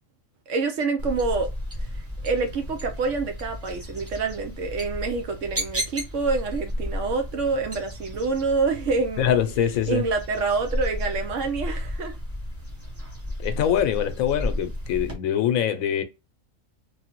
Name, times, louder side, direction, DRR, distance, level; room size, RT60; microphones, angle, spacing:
voice 1, 0.5-1.5 2.2-9.4 9.9-12.1, right 4 dB, 65° right, 1.0 m, -27 dB
sound 1, 1.0-15.1, equal, 15° right, 0.7 m, -33 dB
voice 2, 9.2-10.1 13.4-16.0, left 10 dB, 75° left, 1.0 m, -24 dB
3.1 x 2.3 x 2.9 m
omnidirectional pair, 1.4 m